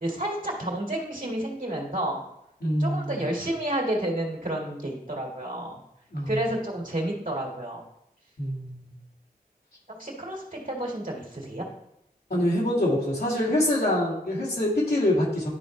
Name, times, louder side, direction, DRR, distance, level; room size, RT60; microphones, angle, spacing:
voice 1, 0.0-2.2 2.8-5.8 6.3-7.8 9.9-11.7, right 1 dB, 60° right, -1 dB, 2.1 m, -30 dB
voice 2, 2.6-3.2 6.1-6.4 8.4-8.9 12.3-15.5, left 1 dB, 90° left, -6 dB, 2.4 m, -25 dB
11.5 x 4.5 x 3.2 m, 0.82 s
wide cardioid pair, 50°, 16 cm